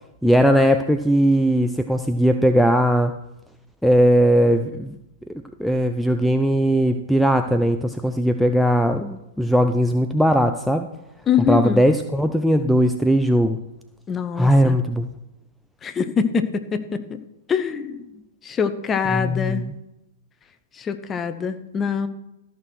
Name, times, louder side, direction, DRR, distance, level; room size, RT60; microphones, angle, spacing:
voice 1, 0.2-3.1 3.8-5.0 5.6-10.9 11.5-13.6 14.4-15.1 19.1-19.7, equal, ahead, 7 dB, 0.5 m, -19 dB
voice 2, 11.3-11.8 14.1-14.8 15.8-17.0 17.5-18.1 18.4-19.7 20.8-22.1, left 7 dB, 20° left, 10 dB, 0.9 m, -24 dB
13.5 x 6.0 x 6.3 m, 0.91 s
figure-of-eight pair, 110°, 0 cm